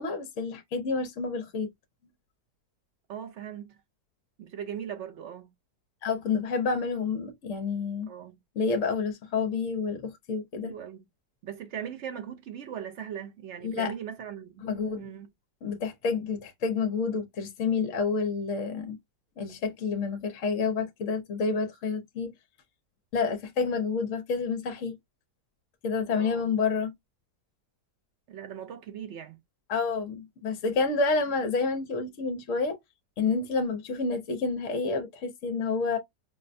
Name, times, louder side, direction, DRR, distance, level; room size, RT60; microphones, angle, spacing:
voice 1, 0.0-1.7 6.0-8.1 8.6-10.7 13.6-13.9 14.6-15.0 15.6-19.0 19.4-22.3 23.1-25.0 25.8-26.9 29.7-32.8 33.2-36.0, left 4 dB, 60° left, 0.9 m, -29 dB
voice 2, 3.1-3.8 4.4-5.5 8.1-8.4 10.6-11.0 11.4-14.7 15.0-15.3 26.1-26.5 28.3-29.4, right 9 dB, 80° right, 0.6 m, -39 dB
5.5 x 2.1 x 2.5 m
omnidirectional pair, 1.8 m